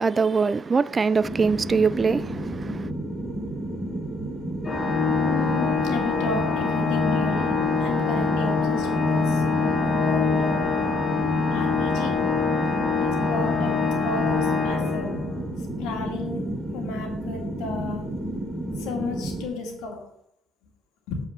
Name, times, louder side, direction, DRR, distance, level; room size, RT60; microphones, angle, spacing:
voice 1, 0.0-2.9, right 5 dB, 25° right, 0.3 m, -23 dB
sound 1, 1.2-19.5, right 1 dB, 5° right, 2.3 m, -32 dB
Organ, 4.6-15.5, left 5 dB, 25° left, 1.2 m, -24 dB
voice 2, 5.2-10.9 11.5-12.2 13.0-15.2 15.8-18.1 18.8-20.1 21.1-21.2, left 3 dB, 85° left, 2.3 m, -33 dB
8.2 x 4.9 x 6.8 m
cardioid pair, 140°, 0 cm